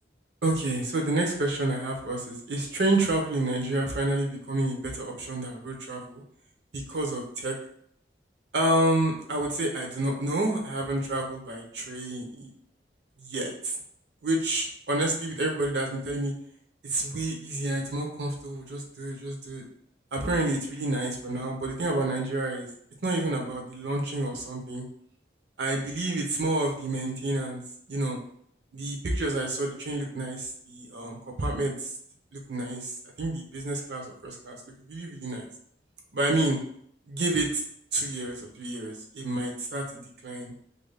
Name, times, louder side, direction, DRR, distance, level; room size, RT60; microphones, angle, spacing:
voice 1, 0.4-6.2 6.7-7.6 8.5-12.5 13.2-13.8 14.2-16.3 16.8-19.6 20.1-22.7 23.0-24.9 25.6-27.6 27.9-28.2 28.7-31.9 32.3-34.6 34.9-35.5 36.1-36.6 37.1-37.6 37.9-40.5, right 2 dB, 70° right, 1 dB, 0.7 m, -29 dB
2.6 x 2.2 x 3.3 m, 0.65 s
head